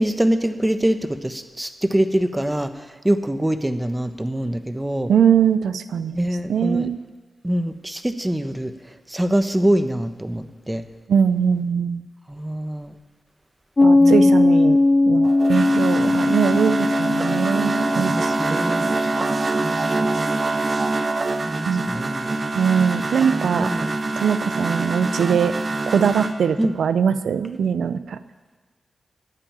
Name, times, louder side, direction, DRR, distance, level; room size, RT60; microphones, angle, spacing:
voice 1, 0.0-5.1 6.1-6.9 7.4-8.7 9.1-10.8 12.3-13.0 13.9-14.3 18.1-18.9 19.6-20.4 21.4-22.4 23.3-24.0 26.6-26.7, right 1 dB, 15° right, 9 dB, 1.1 m, -24 dB
voice 2, 5.1-6.2 6.5-7.0 11.1-12.0 13.8-14.8 15.1-18.1 18.5-18.6 21.7-21.9 22.6-23.7 24.2-25.5 25.9-28.2, right 7 dB, 85° right, 14 dB, 0.5 m, -21 dB
Piano, 13.8-21.0, left 2 dB, 40° left, 0.9 m, -20 dB
sound 1, 15.2-26.3, right 3 dB, 50° right, 1.0 m, -25 dB
12.0 x 8.8 x 8.9 m, 1.4 s
cardioid pair, 50°, 0 cm